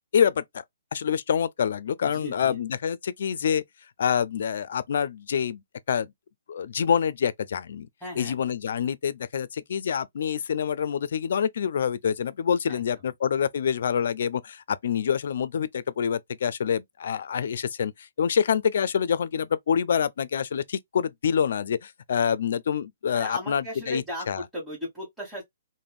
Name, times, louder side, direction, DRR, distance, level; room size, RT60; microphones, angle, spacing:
voice 1, 0.1-0.6 0.9-3.6 4.0-5.6 5.9-6.1 6.5-7.9 8.2-24.4, left 7 dB, 55° left, 0.4 m, -26 dB
voice 2, 2.0-2.6 8.0-8.4 12.7-12.8 23.1-25.4, equal, ahead, 1.3 m, -36 dB
3.4 x 2.1 x 2.4 m
hypercardioid pair, 160°, 0 cm